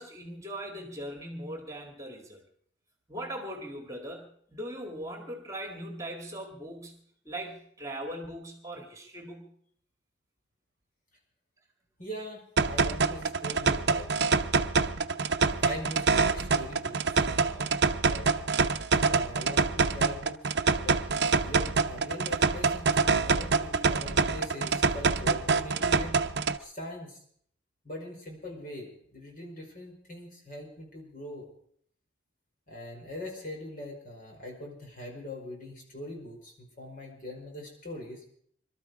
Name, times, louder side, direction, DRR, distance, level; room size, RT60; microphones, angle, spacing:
voice 1, 0.0-2.4 3.1-7.0 7.3-9.5, right 1 dB, 15° right, 3 dB, 1.9 m, -40 dB
voice 2, 12.0-14.1 15.6-18.3 19.0-20.4 20.7-26.2 26.6-27.2 27.8-31.5 32.7-38.2, left 1 dB, 45° left, 0 dB, 4.9 m, -42 dB
sound 1, 12.6-26.6, right 4 dB, 60° right, 0.7 m, -26 dB
22.5 x 12.5 x 4.8 m, 0.64 s
head